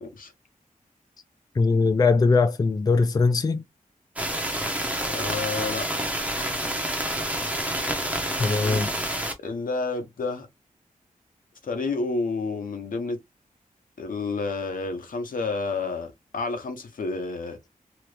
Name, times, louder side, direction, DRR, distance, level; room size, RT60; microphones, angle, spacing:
voice 1, 0.0-0.3 5.0-6.1 8.5-8.8 9.4-10.5 11.6-13.2 14.0-17.6, left 3 dB, 80° left, 0.9 m, -30 dB
voice 2, 1.6-3.6 8.4-8.9, left 4 dB, 25° left, 0.3 m, -21 dB
sound 1, 4.2-9.3, right 1 dB, 10° right, 0.7 m, -28 dB
2.9 x 2.5 x 3.2 m
wide cardioid pair, 135°, 14 cm